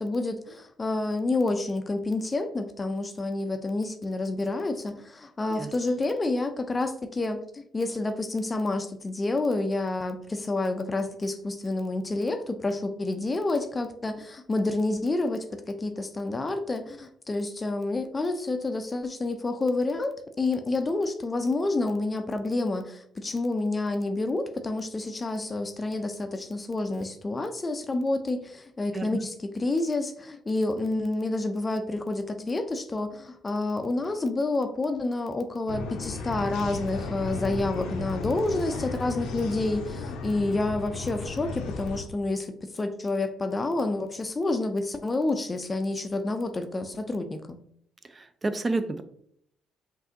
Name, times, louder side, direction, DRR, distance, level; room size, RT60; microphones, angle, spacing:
voice 1, 0.0-47.6, left 2 dB, 30° left, 7 dB, 0.5 m, -29 dB
sound 1, 35.7-42.0, left 3 dB, 70° left, 0.6 m, -35 dB
voice 2, 48.0-49.0, right 2 dB, 30° right, 10 dB, 0.5 m, -30 dB
5.5 x 2.7 x 2.6 m, 0.65 s
hypercardioid pair, 45°, 0 cm